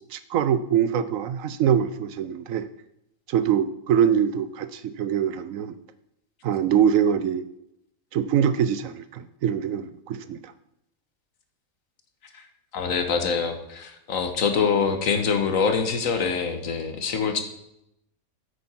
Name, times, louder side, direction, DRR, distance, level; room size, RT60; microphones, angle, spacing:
voice 1, 0.1-2.7 3.3-5.8 6.4-7.4 8.1-10.5, right 8 dB, 70° right, 14 dB, 1.0 m, -23 dB
voice 2, 12.7-17.4, left 5 dB, 65° left, 7 dB, 1.5 m, -25 dB
9.5 x 8.6 x 4.3 m, 0.81 s
omnidirectional pair, 1.5 m